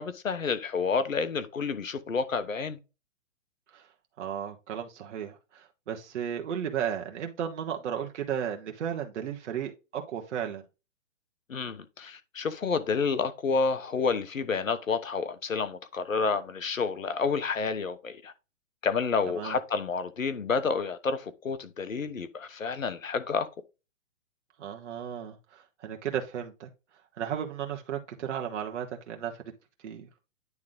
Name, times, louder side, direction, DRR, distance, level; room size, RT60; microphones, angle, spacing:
voice 1, 0.0-2.8 11.5-18.3 18.8-23.5, left 5 dB, 90° left, 1.2 m, -29 dB
voice 2, 4.2-10.6 19.4-19.6 24.6-26.7 27.2-29.4 29.8-30.1, right 9 dB, 65° right, 1.3 m, -34 dB
9.5 x 3.6 x 3.7 m
hypercardioid pair, 130°, 39 cm